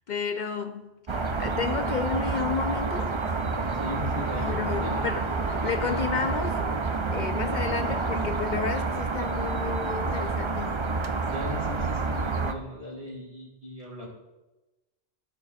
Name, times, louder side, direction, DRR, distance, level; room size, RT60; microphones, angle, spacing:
voice 1, 0.1-3.2 4.3-6.8 7.1-10.8, left 6 dB, 55° left, 0.6 m, -32 dB
sound 1, 1.1-12.5, right 4 dB, 35° right, 0.6 m, -28 dB
voice 2, 3.7-5.1 11.2-14.1, left 1 dB, 85° right, 4.1 m, -37 dB
17.0 x 6.8 x 2.5 m
omnidirectional pair, 1.1 m